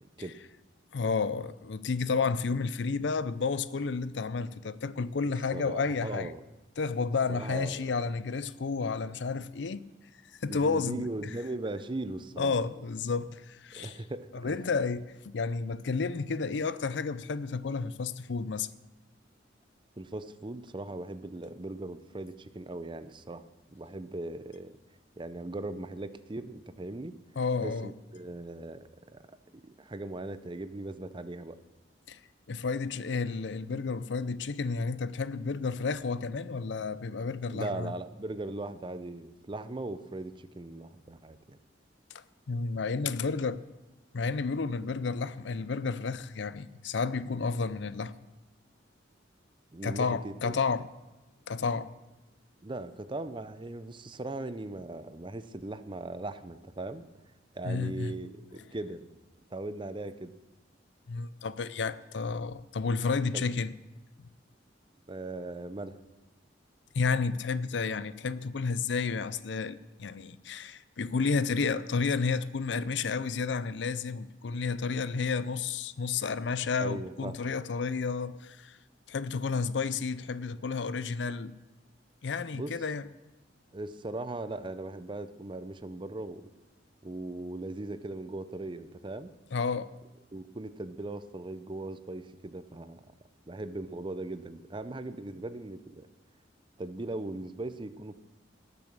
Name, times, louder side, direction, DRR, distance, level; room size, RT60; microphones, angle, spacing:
voice 1, 0.9-6.3 6.8-9.8 10.4-11.1 12.4-13.9 14.3-18.7 27.4-27.9 32.1-32.2 32.5-37.9 42.5-43.6 44.1-48.1 49.8-50.9 51.5-51.9 57.6-58.2 61.1-63.7 66.9-78.8 79.1-81.6 82.2-83.1 89.5-89.9, left 4 dB, 70° left, 0.5 m, -31 dB
voice 2, 5.2-6.4 7.3-8.1 10.5-12.6 13.7-14.6 20.0-24.7 25.2-27.2 27.6-29.4 29.8-31.6 37.5-41.6 49.7-50.6 52.6-57.1 57.5-59.2 59.5-60.3 63.3-63.4 65.1-66.0 76.8-77.4 82.5-82.7 83.7-86.4 87.0-89.3 90.3-93.0 93.5-96.1 96.8-98.2, right 2 dB, 25° right, 0.6 m, -39 dB
18.0 x 7.0 x 6.6 m
head